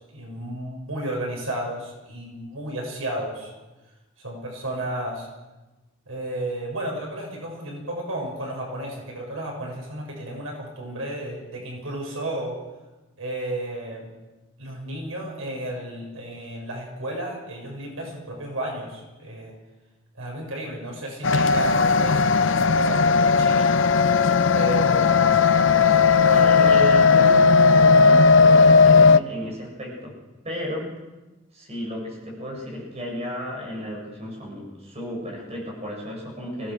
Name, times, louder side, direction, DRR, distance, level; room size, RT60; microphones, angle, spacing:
voice 1, 0.0-3.5 4.2-5.3 6.1-12.6 13.2-14.1 14.6-19.5 20.2-23.7 24.5-26.1, right 1 dB, 85° right, 0 dB, 6.9 m, -33 dB
sound 1, 21.2-29.2, left 4 dB, 65° left, 0.6 m, -16 dB
voice 2, 26.3-30.1 30.4-30.9 31.5-36.7, equal, 30° right, -1 dB, 7.4 m, -33 dB
24.0 x 18.0 x 6.5 m, 1.1 s
head